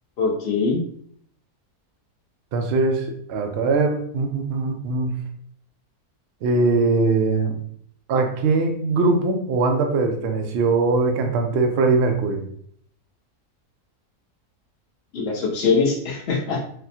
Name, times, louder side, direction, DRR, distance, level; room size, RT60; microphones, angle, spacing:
voice 1, 0.2-0.8 15.1-16.6, left 4 dB, 50° left, -1 dB, 0.8 m, -22 dB
voice 2, 2.5-5.1 6.4-7.6 8.1-12.4, right 3 dB, 70° right, 4 dB, 0.6 m, -21 dB
4.1 x 2.1 x 2.7 m, 0.63 s
omnidirectional pair, 1.6 m